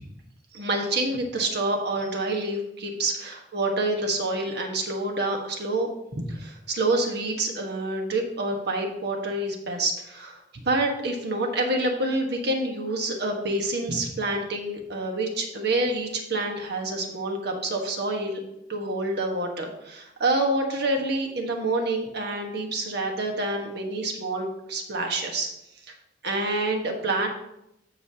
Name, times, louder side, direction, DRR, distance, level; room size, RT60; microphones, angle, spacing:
voice 1, 0.5-10.4 10.6-18.4 18.7-25.5 25.9-26.0 26.2-27.3, right 2 dB, 60° right, 2 dB, 1.4 m, -27 dB
15.0 x 5.2 x 2.8 m, 0.85 s
head